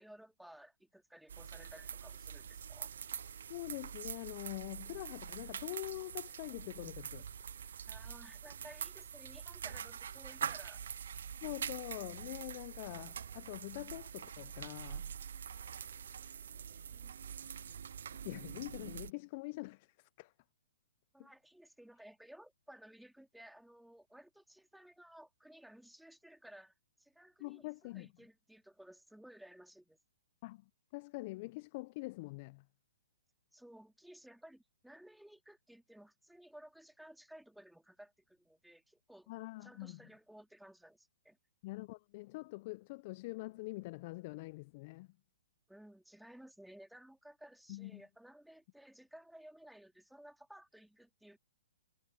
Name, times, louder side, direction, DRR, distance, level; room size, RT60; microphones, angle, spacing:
voice 1, 0.0-2.9 7.9-10.9 21.1-30.0 33.5-39.3 39.6-41.4 45.7-51.4, right 1 dB, ahead, 3.7 m, -57 dB
sound 1, 1.3-19.1, right 8 dB, 70° right, 0.6 m, -45 dB
voice 2, 3.5-7.3 11.4-15.1 18.2-20.3 21.2-21.3 27.4-28.1 30.4-32.6 39.3-40.0 41.6-45.1 47.7-48.0, left 22 dB, 40° left, 0.7 m, -45 dB
hypercardioid pair, 125°, 0 cm